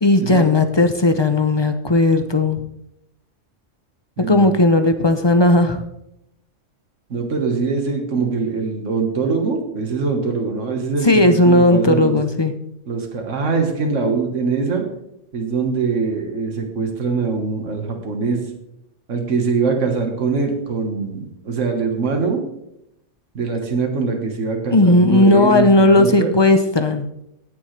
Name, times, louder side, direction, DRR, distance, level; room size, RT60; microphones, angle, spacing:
voice 1, 0.0-2.6 4.2-5.8 11.0-12.5 24.7-27.1, left 2 dB, 30° left, 8 dB, 0.5 m, -15 dB
voice 2, 4.2-4.5 7.1-12.2 12.9-14.9 15.3-18.4 19.1-21.2 21.5-22.4 23.3-26.3, right 4 dB, 75° right, 3 dB, 1.8 m, -22 dB
17.5 x 7.1 x 3.3 m, 0.80 s
omnidirectional pair, 1.3 m